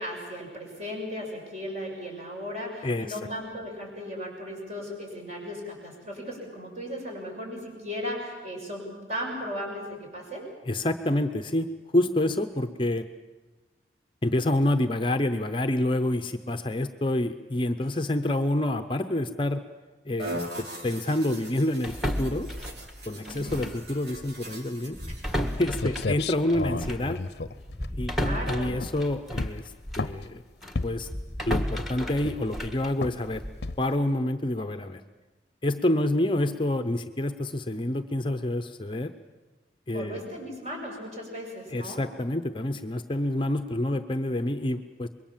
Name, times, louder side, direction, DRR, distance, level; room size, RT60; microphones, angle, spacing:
voice 1, 0.0-10.5 23.2-23.7 25.1-25.7 28.1-28.7 39.9-42.0, equal, 40° right, 0 dB, 6.6 m, -36 dB
voice 2, 2.8-3.2 10.7-11.7 11.9-13.1 14.2-19.6 20.1-22.5 23.1-25.0 25.6-27.2 28.0-29.6 30.0-30.4 30.8-31.1 31.4-33.4 33.8-35.0 35.6-39.1 39.9-40.2 41.7-45.1, left 1 dB, 25° left, 9 dB, 0.7 m, -27 dB
sound 1, 20.2-25.6, right 1 dB, 65° right, 2.9 m, -41 dB
sound 2, 21.8-23.9 24.1-24.3 24.9-30.2 30.6-33.7, equal, ahead, 1.5 m, -34 dB
sound 3, 25.5-25.6 25.8-28.4 28.8-29.0 29.4-30.3 30.8-31.1 31.5-31.9 32.2-32.6 33.0-33.2 33.6-34.0, left 3 dB, 65° left, 0.7 m, -32 dB
25.5 x 22.0 x 7.4 m, 1.2 s
head